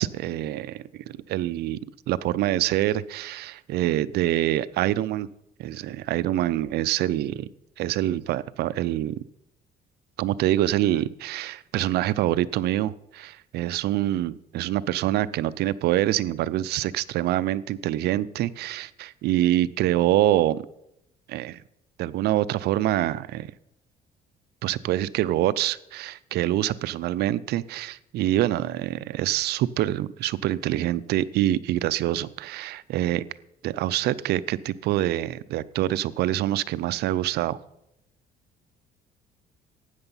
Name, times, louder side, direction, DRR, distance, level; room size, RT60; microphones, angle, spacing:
voice 1, 0.0-1.8 2.1-5.3 5.6-7.5 7.8-9.2 10.2-20.7 21.3-21.6 22.0-23.5 24.6-33.2 33.6-37.6, right 14 dB, 75° right, 17 dB, 0.5 m, -25 dB
13.0 x 9.0 x 5.6 m, 0.82 s
cardioid pair, 110°, 17 cm